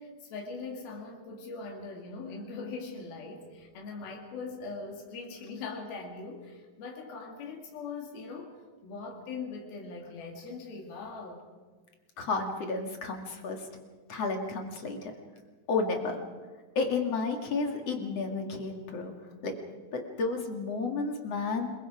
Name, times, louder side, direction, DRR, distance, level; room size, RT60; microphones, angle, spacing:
voice 1, 0.0-8.5 8.8-11.4, left 4 dB, 90° left, 1 dB, 4.3 m, -41 dB
voice 2, 12.2-13.7 14.1-15.1 15.7-16.2 16.8-19.1 19.4-19.6 19.9-21.7, left 4 dB, 50° left, 3 dB, 2.9 m, -31 dB
28.5 x 22.0 x 5.0 m, 1.4 s
omnidirectional pair, 4.2 m